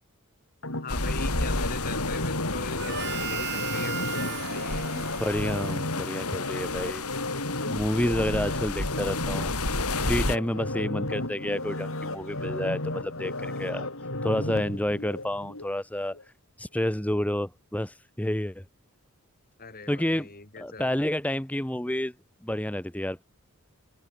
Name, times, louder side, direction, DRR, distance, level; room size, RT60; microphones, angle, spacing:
sound 1, 0.6-15.7 16.1-16.2, left 1 dB, 65° left, 7.4 m, -34 dB
voice 1, 0.8-4.9 8.5-8.6 19.6-20.9, left 3 dB, 40° left, 3.8 m, -40 dB
sound 2, 0.9-10.4, left 2 dB, 85° left, 4.6 m, -32 dB
Harmonica, 2.8-6.6, right 9 dB, 50° right, 3.6 m, -37 dB
voice 2, 4.9-7.0 7.7-9.5 10.0-13.9 14.2-16.3 16.6-18.6 19.9-20.3 20.6-22.1 22.4-23.2, left 1 dB, 5° left, 1.1 m, -29 dB
head